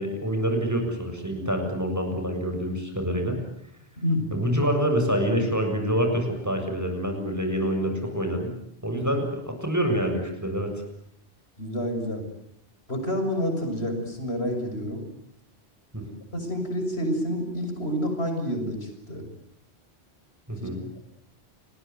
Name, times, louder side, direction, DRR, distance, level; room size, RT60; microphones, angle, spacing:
voice 1, 0.0-3.4 4.3-8.5 8.8-10.7 15.9-16.1 20.5-20.8, equal, 15° right, 4 dB, 7.3 m, -26 dB
voice 2, 4.0-4.3 8.9-9.0 11.6-12.3 12.9-15.0 16.3-19.2 20.6-20.7, equal, 70° left, 5 dB, 7.1 m, -28 dB
29.5 x 20.5 x 9.5 m, 0.73 s
omnidirectional pair, 1.1 m